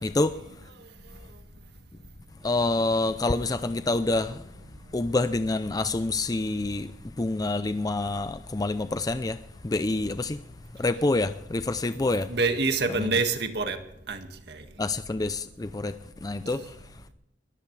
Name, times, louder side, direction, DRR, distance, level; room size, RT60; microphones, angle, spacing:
voice 1, 0.0-0.4 2.4-4.4 4.9-6.9 7.2-9.4 9.6-10.4 10.8-12.3 13.0-13.1 14.8-16.0 16.2-16.8, left 2 dB, 20° left, 0.5 m, -27 dB
voice 2, 12.3-13.8 14.1-14.6 16.5-16.7, right 3 dB, 60° right, 1.9 m, -27 dB
22.0 x 15.0 x 3.3 m
head